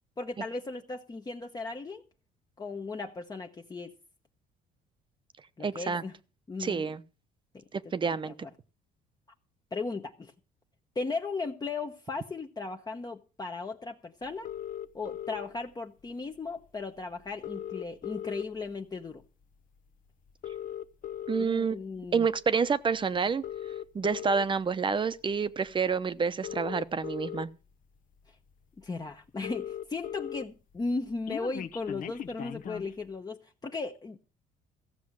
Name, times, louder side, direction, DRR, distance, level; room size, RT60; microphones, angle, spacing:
voice 1, 0.2-2.0 2.6-3.9 5.6-6.1 6.5-6.8 7.5-7.6 8.0-8.3 9.7-10.3 10.9-14.5 14.9-19.2 21.4-22.3 28.8-34.2, left 3 dB, 25° left, 1.1 m, -36 dB
voice 2, 5.6-6.0 6.6-7.0 7.7-8.3 21.3-21.8 22.1-23.4 23.9-27.5, right 5 dB, 30° right, 0.9 m, -28 dB
sound 1, 14.4-15.5 16.6-16.7 17.0-17.1 17.3-18.7 19.2-19.4 20.3-21.4 22.1-22.4 23.3-24.4 25.7-25.8 26.3-27.4 28.1-28.2 28.5-28.6 28.8-28.9 29.1-30.4 30.8-32.9, left 10 dB, 55° left, 1.0 m, -38 dB
15.0 x 6.9 x 7.6 m
cardioid pair, 110°, 17 cm